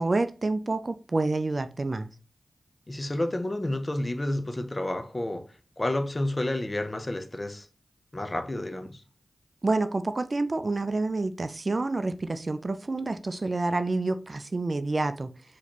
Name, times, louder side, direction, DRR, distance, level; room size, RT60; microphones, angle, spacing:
voice 1, 0.0-2.1 9.6-15.3, right 2 dB, 45° right, 0.4 m, -28 dB
voice 2, 2.9-5.5 5.8-7.7 8.1-9.0, left 1 dB, 30° left, 0.6 m, -30 dB
4.1 x 3.0 x 2.9 m
cardioid pair, 45°, 0 cm